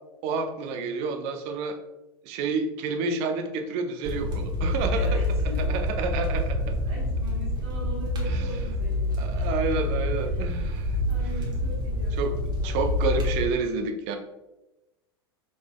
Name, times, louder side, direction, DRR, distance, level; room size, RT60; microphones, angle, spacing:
voice 1, 0.2-1.8 2.2-5.1 5.7-6.6 8.3-8.4 9.2-11.0 12.2-12.3 12.6-14.2, right 4 dB, 50° right, 6 dB, 0.6 m, -29 dB
sound 1, 4.0-13.4, left 1 dB, 30° right, 1.0 m, -27 dB
voice 2, 4.9-5.8 6.5-9.8 10.2-12.8, right 1 dB, 80° right, -8 dB, 1.4 m, -41 dB
5.2 x 3.9 x 2.2 m, 1.0 s
hypercardioid pair, 85°, 14 cm